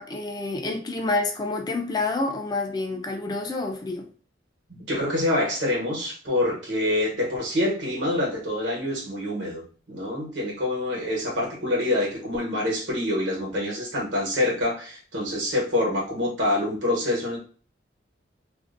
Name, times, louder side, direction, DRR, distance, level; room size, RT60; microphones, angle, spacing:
voice 1, 0.0-4.1, left 3 dB, 20° left, 0.4 m, -28 dB
voice 2, 4.7-17.4, left 1 dB, 75° right, 1.1 m, -26 dB
2.5 x 2.1 x 2.5 m
head